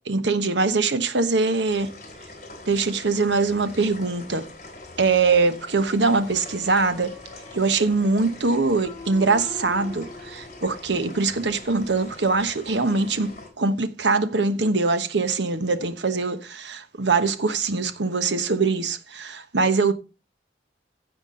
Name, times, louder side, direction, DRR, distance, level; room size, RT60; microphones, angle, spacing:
voice 1, 0.1-1.9 2.7-4.5 5.0-7.1 7.5-19.9, right 4 dB, 85° right, 1.2 m, -23 dB
sound 1, 1.7-13.5, left 2 dB, 45° left, 3.4 m, -44 dB
sound 2, 6.2-12.0, left 3 dB, 25° left, 2.8 m, -44 dB
15.5 x 6.0 x 3.9 m
head